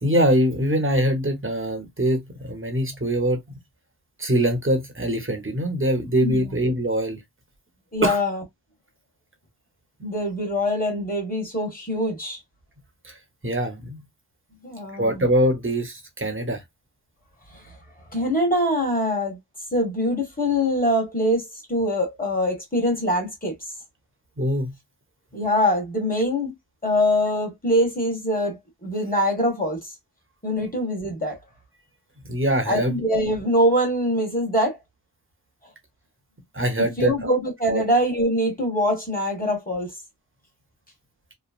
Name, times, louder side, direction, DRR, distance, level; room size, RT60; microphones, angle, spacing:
voice 1, 0.0-3.4 4.2-7.2 8.0-8.2 13.0-13.2 13.4-14.0 14.9-16.6 24.4-24.7 32.3-33.0 36.5-37.3 37.7-37.8, right 1 dB, 30° right, 0.9 m, -23 dB
voice 2, 6.2-6.5 7.9-8.4 10.0-12.4 14.6-15.2 17.5-17.8 18.1-19.4 19.7-23.5 25.3-26.5 26.8-29.9 30.4-31.4 32.7-34.8 37.0-39.9, equal, 20° left, 1.5 m, -23 dB
3.1 x 2.1 x 2.4 m
wide cardioid pair, 55°, 41 cm